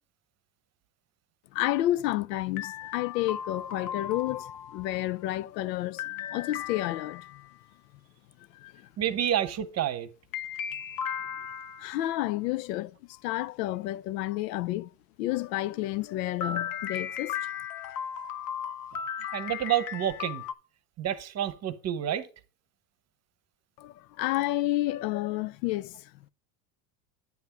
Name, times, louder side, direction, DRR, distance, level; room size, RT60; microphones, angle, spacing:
voice 1, 1.5-7.4 8.5-8.7 11.8-14.9 15.2-17.5 23.8-26.0, left 15 dB, 90° left, 0.5 m, -30 dB
sound 1, 2.6-5.0 6.0-7.6 10.3-12.0 16.4-20.5, left 8 dB, 45° left, 0.8 m, -36 dB
voice 2, 9.0-10.1 19.3-20.4 21.0-22.3, right 10 dB, 30° right, 0.8 m, -29 dB
9.5 x 3.5 x 6.9 m
supercardioid pair, 110°, 48 cm